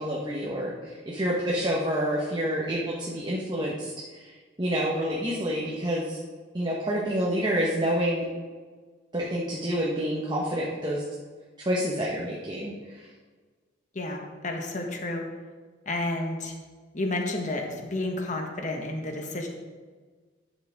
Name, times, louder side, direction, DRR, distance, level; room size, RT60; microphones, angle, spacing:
voice 1, 0.0-3.9 4.2-4.3 4.6-6.2 6.5-8.3 9.1-11.0 11.6-12.7, equal, 25° right, -4 dB, 1.2 m, -28 dB
voice 2, 13.9-15.2 15.8-16.5 16.9-19.5, left 2 dB, 40° left, 3 dB, 1.3 m, -31 dB
11.5 x 7.5 x 3.6 m, 1.4 s
head